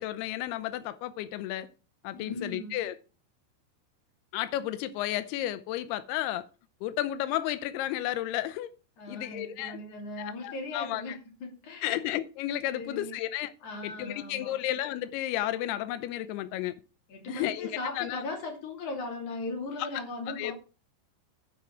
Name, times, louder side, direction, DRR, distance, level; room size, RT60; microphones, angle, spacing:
voice 1, 0.0-1.7 2.0-2.9 4.3-6.5 6.8-8.7 9.1-9.8 10.2-11.2 11.8-13.5 13.8-16.7 17.3-17.7 18.0-18.2 19.8-19.9 20.3-20.5, left 13 dB, 90° left, 2.3 m, -32 dB
voice 2, 2.2-2.8 9.0-12.0 12.7-13.2 13.6-14.6 17.1-20.5, left 2 dB, 45° left, 3.9 m, -38 dB
9.2 x 4.9 x 7.8 m
omnidirectional pair, 5.4 m